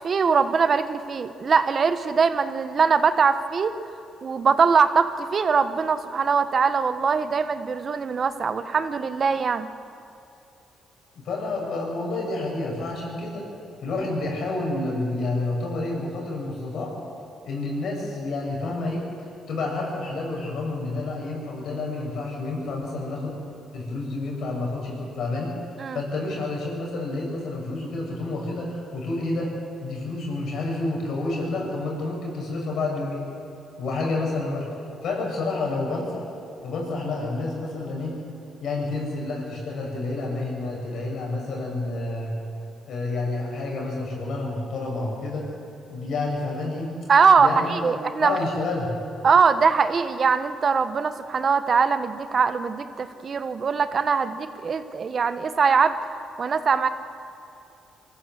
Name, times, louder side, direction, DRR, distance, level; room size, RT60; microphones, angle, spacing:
voice 1, 0.0-3.7 4.2-9.7 25.8-26.0 47.1-48.4 49.2-56.0 56.4-56.9, right 5 dB, 45° right, 11 dB, 1.2 m, -22 dB
voice 2, 11.1-13.5 13.8-16.9 17.4-19.1 19.5-23.3 23.7-25.5 25.9-29.5 29.8-33.2 33.8-34.7 35.0-36.2 36.6-38.2 38.6-42.3 42.9-45.5 45.9-46.9 47.4-48.9, left 2 dB, 70° left, -1 dB, 6.9 m, -29 dB
23.5 x 15.0 x 7.8 m, 2.7 s
cardioid pair, 90°, 0 cm